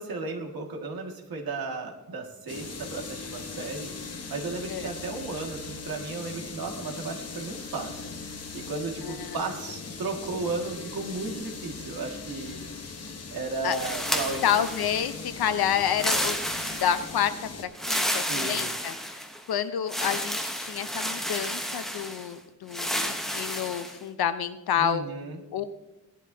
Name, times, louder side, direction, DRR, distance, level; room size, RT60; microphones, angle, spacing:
voice 1, 0.0-3.9 4.3-8.1 8.5-12.6 13.3-14.4 18.3-18.7 24.8-25.4, right 3 dB, 70° right, 1 dB, 2.0 m, -34 dB
sound 1, 2.5-17.7, left 4 dB, 40° left, 1.2 m, -39 dB
voice 2, 9.0-9.4 13.6-13.8 14.4-16.4 16.8-19.0 19.5-25.1 25.5-25.7, left 9 dB, 80° left, 11 dB, 0.9 m, -29 dB
sound 2, 13.7-15.2 15.9-17.2 17.7-19.4 19.9-22.3 22.7-24.0, equal, ahead, 0.9 m, -31 dB
17.5 x 11.5 x 2.8 m, 0.96 s
wide cardioid pair, 170°, 37 cm